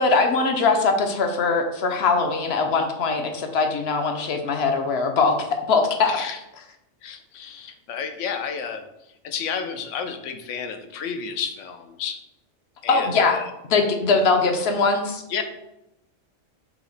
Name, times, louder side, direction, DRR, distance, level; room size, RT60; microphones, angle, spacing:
voice 1, 0.0-6.2 12.9-13.4 13.7-15.2, left 4 dB, 65° left, 5 dB, 0.8 m, -21 dB
voice 2, 6.0-6.4 7.0-8.8 9.2-12.2 12.8-13.5 15.3-15.4, left 6 dB, 85° left, 7 dB, 0.9 m, -31 dB
5.6 x 2.1 x 3.9 m, 0.87 s
omnidirectional pair, 1.2 m